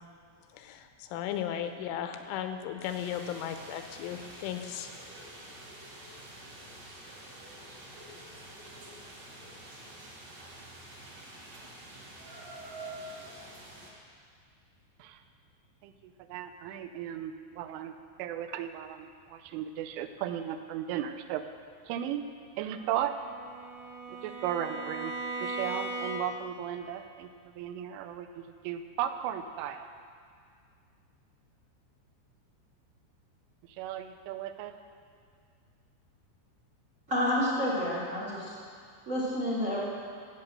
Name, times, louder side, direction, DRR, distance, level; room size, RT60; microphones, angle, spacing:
voice 1, 0.5-5.0, left 9 dB, 85° left, 7 dB, 3.3 m, -36 dB
sound 1, 2.8-13.9, right 1 dB, 50° right, 3.4 m, -47 dB
voice 2, 15.8-17.9 18.2-21.4 21.9-22.2 22.6-23.2 24.1-25.1 25.4-29.9 33.7-34.7, right 10 dB, 90° right, 8 dB, 3.2 m, -36 dB
Bowed string instrument, 22.7-26.6, right 1 dB, 70° right, 3.6 m, -38 dB
voice 3, 37.1-38.6 39.0-39.8, left 1 dB, 30° right, -6 dB, 1.4 m, -29 dB
13.5 x 8.6 x 7.6 m, 2.1 s
omnidirectional pair, 5.6 m